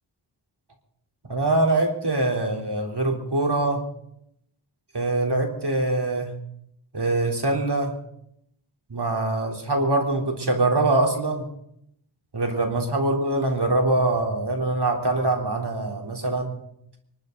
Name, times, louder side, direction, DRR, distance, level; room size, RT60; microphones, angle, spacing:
voice 1, 1.3-3.8 4.9-6.3 6.9-7.9 8.9-11.5 12.3-16.6, right 2 dB, 60° right, 2 dB, 3.8 m, -23 dB
25.0 x 13.0 x 4.0 m, 0.75 s
cardioid pair, 40°, 46 cm